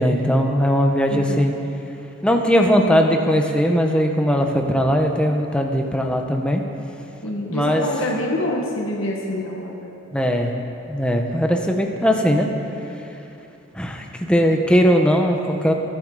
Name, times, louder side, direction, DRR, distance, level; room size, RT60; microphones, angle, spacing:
voice 1, 0.0-1.5 2.2-6.6 7.5-7.9 10.1-10.5 10.9-12.5 13.7-15.7, equal, 5° left, 2 dB, 1.1 m, -19 dB
voice 2, 1.1-1.4 7.2-9.9, left 1 dB, 90° left, -2 dB, 1.6 m, -26 dB
20.5 x 11.0 x 4.9 m, 2.9 s
head